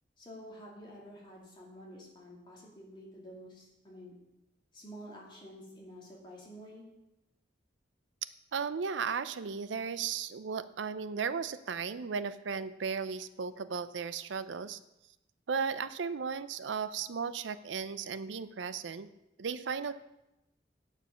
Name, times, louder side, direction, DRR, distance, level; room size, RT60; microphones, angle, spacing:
voice 1, 0.2-4.1 4.7-6.8, equal, 25° left, -4 dB, 2.8 m, -49 dB
voice 2, 8.5-14.8 15.5-19.1 19.4-19.9, right 6 dB, 85° right, 14 dB, 0.5 m, -35 dB
8.8 x 7.2 x 5.7 m, 0.92 s
head